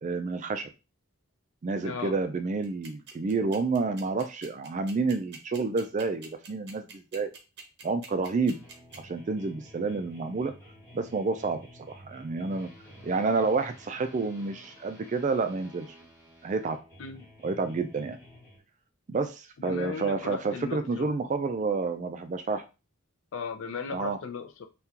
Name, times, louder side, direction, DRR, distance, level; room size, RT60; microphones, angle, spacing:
voice 1, 0.0-0.7 1.6-7.3 7.8-8.6 9.0-10.5 10.9-11.6 11.9-12.7 13.0-15.9 16.4-16.8 17.4-18.2 19.1-22.6 23.9-24.2, right 4 dB, 35° right, 9 dB, 0.3 m, -29 dB
voice 2, 1.8-2.1 17.0-17.3 19.6-21.1 23.3-24.6, left 5 dB, 60° left, 7 dB, 0.4 m, -36 dB
sound 1, 2.6-9.0, right 5 dB, 50° right, 0.7 m, -46 dB
sound 2, 8.5-18.6, left 1 dB, 10° left, 1.1 m, -51 dB
3.6 x 2.3 x 2.8 m, 0.29 s
head